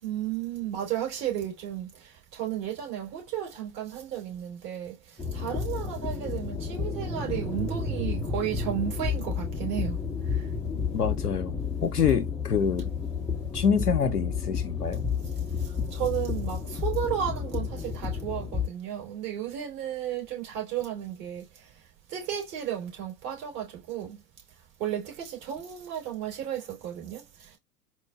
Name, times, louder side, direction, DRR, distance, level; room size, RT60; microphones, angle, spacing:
voice 1, 0.0-10.5 15.6-21.7 22.1-24.2 24.8-27.6, right 10 dB, 45° right, 3.2 m, -34 dB
sound 1, 5.2-18.7, left 5 dB, 10° left, 0.6 m, -31 dB
voice 2, 10.9-12.9 13.5-15.1, left 6 dB, 90° left, 0.6 m, -26 dB
4.3 x 2.5 x 3.4 m
figure-of-eight pair, 90°, 45 cm